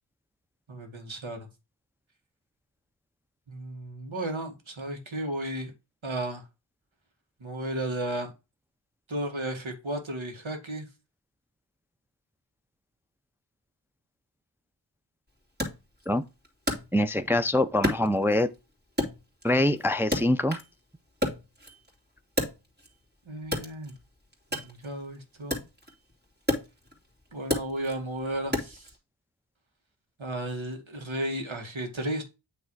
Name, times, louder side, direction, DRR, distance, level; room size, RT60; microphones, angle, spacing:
voice 1, 0.7-1.5 3.5-5.7 6.0-6.4 7.4-8.3 9.1-10.9 23.3-23.9 24.5-25.6 27.3-28.9 30.2-32.2, right 1 dB, 75° right, 1.9 m, -34 dB
Wood, 15.6-17.4 17.8-18.6 19.0-20.8 21.1-23.0 23.4-29.0, left 1 dB, 20° right, 2.6 m, -33 dB
voice 2, 16.9-18.5 19.4-20.6, left 1 dB, 5° right, 0.4 m, -24 dB
8.8 x 3.3 x 4.7 m
wide cardioid pair, 50°, 48 cm